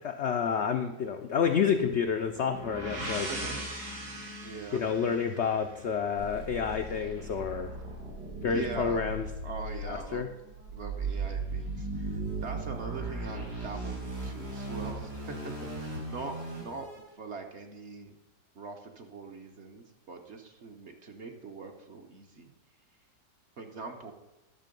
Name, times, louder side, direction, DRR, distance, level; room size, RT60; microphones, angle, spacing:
voice 1, 0.0-3.3 4.7-7.7 8.4-9.3 9.9-10.3, left 6 dB, 70° left, 6 dB, 0.6 m, -29 dB
sound 1, 2.3-6.1, equal, 75° right, 3.8 m, -39 dB
voice 2, 2.9-3.6 4.4-4.8 8.4-9.0 9.4-10.3 10.7-18.1 18.5-22.5 23.6-24.1, right 4 dB, 50° right, 4 dB, 1.0 m, -42 dB
sound 2, 6.2-17.0, right 3 dB, 90° right, 4.8 m, -37 dB
11.5 x 6.6 x 5.2 m, 1.0 s
omnidirectional pair, 1.8 m